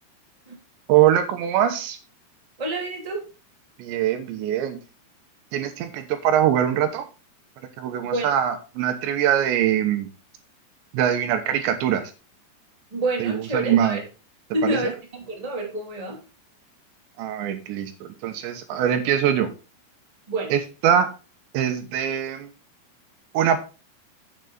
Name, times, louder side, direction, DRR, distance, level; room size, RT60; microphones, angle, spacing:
voice 1, 0.9-2.0 3.8-4.8 5.5-7.0 7.8-10.1 10.9-12.0 13.2-14.0 14.6-14.8 17.2-19.5 20.5-21.1 21.5-22.5 23.3-23.6, right 10 dB, 80° right, 7 dB, 3.4 m, -22 dB
voice 2, 2.6-3.3 8.1-8.3 12.9-14.0 14.5-16.2 20.3-20.5, right 1 dB, 10° right, -1 dB, 2.0 m, -28 dB
8.9 x 8.2 x 4.0 m, 0.32 s
omnidirectional pair, 5.1 m